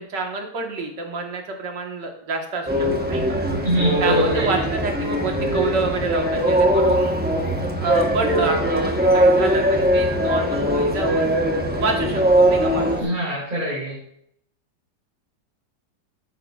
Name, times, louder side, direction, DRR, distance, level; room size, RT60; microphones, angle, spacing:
voice 1, 0.0-3.2 4.0-7.2 7.8-11.3 11.8-13.1, right 3 dB, 75° right, 2 dB, 2.1 m, -27 dB
sound 1, 2.7-13.0, equal, 10° right, 0.8 m, -20 dB
voice 2, 3.6-4.6 13.0-14.0, equal, 25° right, -10 dB, 4.3 m, -24 dB
11.5 x 9.3 x 2.4 m, 0.70 s
omnidirectional pair, 1.9 m